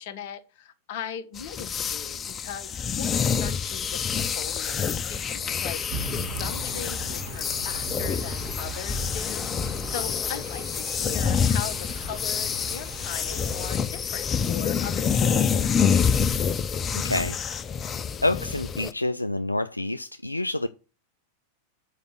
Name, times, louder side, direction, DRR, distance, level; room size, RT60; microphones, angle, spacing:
voice 1, 0.0-5.8 6.3-16.2, left 8 dB, 50° left, 1.1 m, -39 dB
sound 1, 1.4-18.9, left 7 dB, 25° left, 0.5 m, -27 dB
sound 2, 5.9-13.8, right 5 dB, 45° right, 2.0 m, -40 dB
voice 2, 16.9-17.4 18.2-20.7, left 2 dB, 85° left, 0.3 m, -27 dB
6.5 x 5.0 x 6.4 m
figure-of-eight pair, 90°, 0 cm